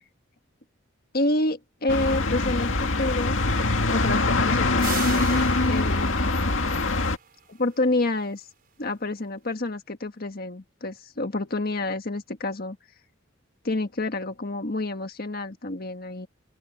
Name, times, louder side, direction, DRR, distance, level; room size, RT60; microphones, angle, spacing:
voice 1, 1.1-6.5 7.5-8.5 8.8-12.8 13.6-16.3, left 2 dB, 50° left, 1.6 m, -29 dB
sound 1, 1.9-7.2, left 2 dB, 80° left, 2.0 m, -23 dB
sound 2, 4.8-7.3, right 8 dB, 50° right, 5.1 m, -38 dB
open air
head